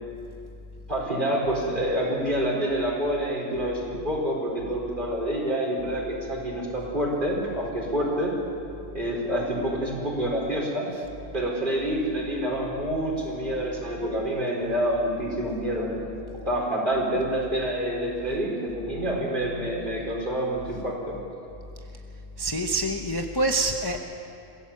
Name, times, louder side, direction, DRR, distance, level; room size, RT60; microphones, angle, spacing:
voice 1, 0.9-8.3 8.9-10.9 11.3-16.0 16.4-21.2, right 1 dB, 40° right, -2 dB, 4.8 m, -27 dB
voice 2, 22.4-24.0, right 2 dB, 20° left, 3 dB, 0.9 m, -26 dB
24.5 x 16.5 x 7.4 m, 2.8 s
omnidirectional pair, 1.3 m